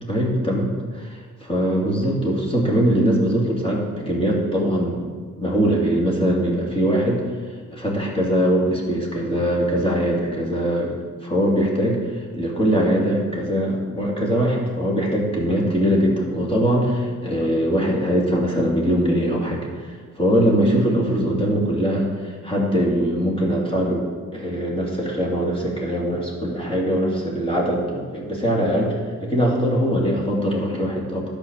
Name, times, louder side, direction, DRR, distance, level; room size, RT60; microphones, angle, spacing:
voice 1, 0.1-5.0 5.4-10.9 11.2-31.2, equal, 20° left, -3 dB, 2.5 m, -22 dB
10.5 x 5.2 x 7.2 m, 1.5 s
cardioid pair, 90°, 30 cm